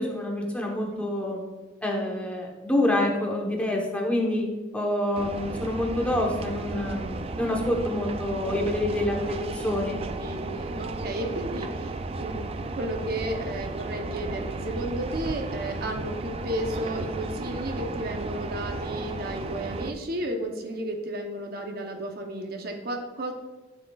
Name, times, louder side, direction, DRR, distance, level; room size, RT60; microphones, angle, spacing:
voice 1, 0.0-1.4 1.8-4.5 4.7-10.0, left 1 dB, 5° left, 0 dB, 1.0 m, -27 dB
sound 1, 5.1-19.9, right 2 dB, 30° right, 0.4 m, -34 dB
voice 2, 10.2-11.9 12.2-23.3, right 1 dB, 50° right, 3 dB, 0.8 m, -33 dB
11.5 x 6.1 x 2.4 m, 1.2 s
head